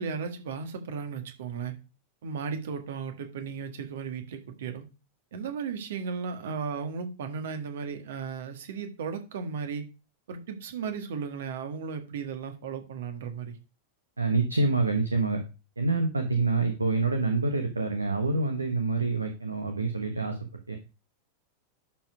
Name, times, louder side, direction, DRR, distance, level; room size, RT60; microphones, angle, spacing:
voice 1, 0.0-1.7 2.2-4.8 5.3-9.9 10.3-13.6, right 6 dB, 60° right, 1.6 m, -35 dB
voice 2, 14.2-15.4 15.8-20.4 20.7-20.8, right 3 dB, 80° right, 1.2 m, -26 dB
11.5 x 4.7 x 5.1 m
figure-of-eight pair, 90°, 0 cm